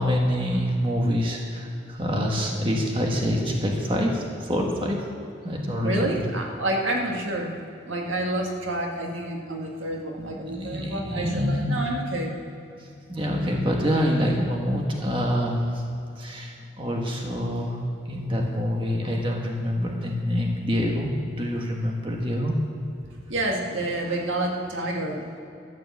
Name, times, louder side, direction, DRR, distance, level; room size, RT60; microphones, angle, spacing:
voice 1, 0.0-5.0 5.4-6.2 10.2-11.8 13.1-15.8 16.2-22.5, equal, 25° right, 0 dB, 1.4 m, -26 dB
voice 2, 5.8-7.5 7.8-12.4 23.3-25.4, right 1 dB, 90° right, 0 dB, 2.0 m, -28 dB
13.0 x 8.3 x 7.3 m, 2.6 s
head